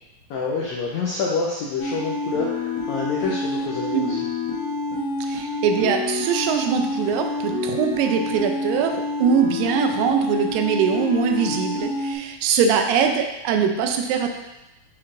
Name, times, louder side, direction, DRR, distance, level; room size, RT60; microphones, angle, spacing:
voice 1, 0.3-4.3, left 4 dB, 85° left, -4 dB, 1.6 m, -27 dB
sound 1, 1.8-12.2, left 2 dB, 60° left, 2.5 m, -28 dB
voice 2, 5.2-14.3, right 6 dB, 85° right, 5 dB, 2.2 m, -22 dB
6.4 x 5.7 x 2.6 m, 0.97 s
omnidirectional pair, 4.0 m